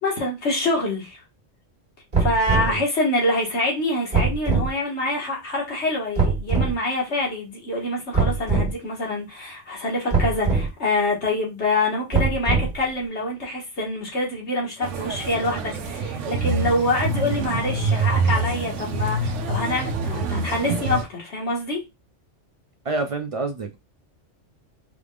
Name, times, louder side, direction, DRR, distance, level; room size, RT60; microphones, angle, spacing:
voice 1, 0.0-1.2 2.2-21.8, left 2 dB, 65° left, 1.9 m, -25 dB
Heart Beat, 2.1-2.8 4.1-4.7 6.2-6.7 8.1-8.7 10.1-10.7 12.1-12.9, right 4 dB, 40° right, 1.7 m, -22 dB
sound 1, 14.8-21.0, right 3 dB, 90° right, 1.0 m, -26 dB
voice 2, 22.8-23.8, right 3 dB, 60° right, 0.3 m, -28 dB
4.7 x 3.4 x 2.4 m
omnidirectional pair, 1.2 m